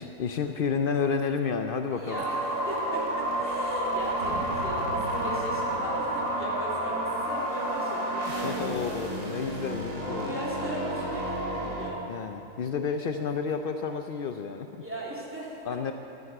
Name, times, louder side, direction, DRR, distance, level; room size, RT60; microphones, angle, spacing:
voice 1, 0.0-2.2 8.4-10.4 12.1-14.7 15.6-15.9, left 6 dB, 80° left, 6 dB, 0.5 m, -30 dB
voice 2, 1.9-8.7 10.1-12.2 14.8-15.6, equal, 10° right, -7 dB, 3.2 m, -37 dB
sound 1, 2.1-11.9, right 1 dB, 25° right, 1.6 m, -30 dB
sound 2, 3.5-8.6, right 1 dB, 70° right, 2.9 m, -44 dB
11.0 x 9.5 x 9.0 m, 2.8 s
omnidirectional pair, 1.6 m